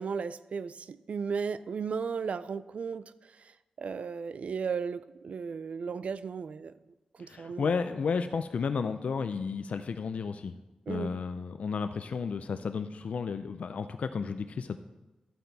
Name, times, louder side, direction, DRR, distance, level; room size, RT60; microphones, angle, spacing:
voice 1, 0.0-6.7 7.2-7.7 10.9-11.1, right 5 dB, 65° right, 15 dB, 0.4 m, -35 dB
voice 2, 7.2-10.6 10.9-14.8, left 5 dB, 70° left, 9 dB, 0.4 m, -32 dB
12.0 x 8.7 x 4.0 m, 1.1 s
wide cardioid pair, 95°, 2 cm